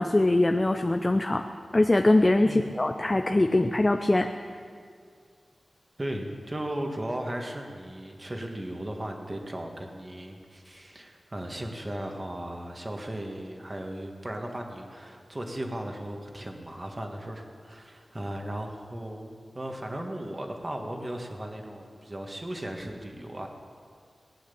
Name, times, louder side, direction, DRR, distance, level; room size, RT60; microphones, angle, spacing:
voice 1, 0.0-1.4 1.7-4.3, left 2 dB, 25° left, 6 dB, 0.6 m, -22 dB
voice 2, 2.4-2.7 6.0-23.5, right 1 dB, 25° right, 2 dB, 1.7 m, -36 dB
18.5 x 9.4 x 7.0 m, 2.2 s
wide cardioid pair, 100°, 0 cm